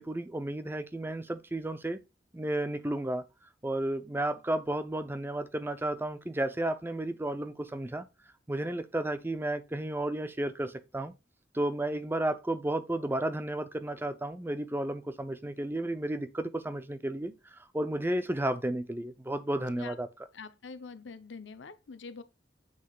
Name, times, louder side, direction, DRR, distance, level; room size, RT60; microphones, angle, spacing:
voice 1, 0.0-2.0 2.3-3.2 3.6-8.0 8.5-11.1 11.5-17.3 17.7-20.1, right 1 dB, 10° right, 0.5 m, -32 dB
voice 2, 20.3-22.2, left 4 dB, 85° left, 0.7 m, -45 dB
7.9 x 6.3 x 2.4 m
head